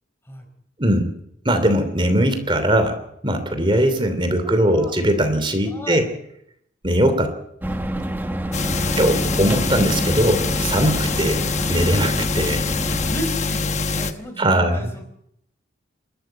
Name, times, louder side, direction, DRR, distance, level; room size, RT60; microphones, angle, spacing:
voice 1, 0.8-1.1 1.4-3.0 3.2-6.1 6.8-7.3 8.9-12.6 14.4-14.9, right 1 dB, 25° right, 8 dB, 3.0 m, -20 dB
voice 2, 4.4-4.9 5.7-6.1 8.7-8.9 13.1-15.0, equal, 15° left, 5 dB, 4.7 m, -34 dB
sound 1, 7.6-13.2, right 1 dB, 10° right, 1.3 m, -28 dB
sound 2, 8.5-14.1, left 4 dB, 40° left, 1.1 m, -24 dB
27.5 x 13.5 x 8.1 m, 0.74 s
head